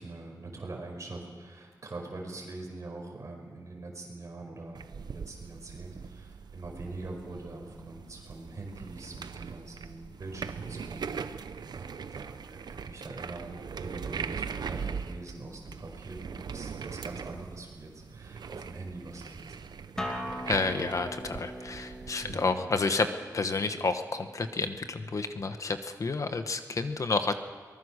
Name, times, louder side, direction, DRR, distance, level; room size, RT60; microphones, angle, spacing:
voice 1, 0.0-11.5 11.7-19.7 22.2-22.6, right 2 dB, 45° right, 1 dB, 5.2 m, -43 dB
sound 1, 4.7-22.4, right 6 dB, 75° right, 0.8 m, -41 dB
Acoustic guitar, 20.0-25.2, equal, 10° left, 2.6 m, -41 dB
voice 2, 20.5-23.1 23.3-27.3, left 4 dB, 50° left, 8 dB, 1.1 m, -30 dB
23.5 x 20.5 x 6.5 m, 1.5 s
wide cardioid pair, 150°, 7 cm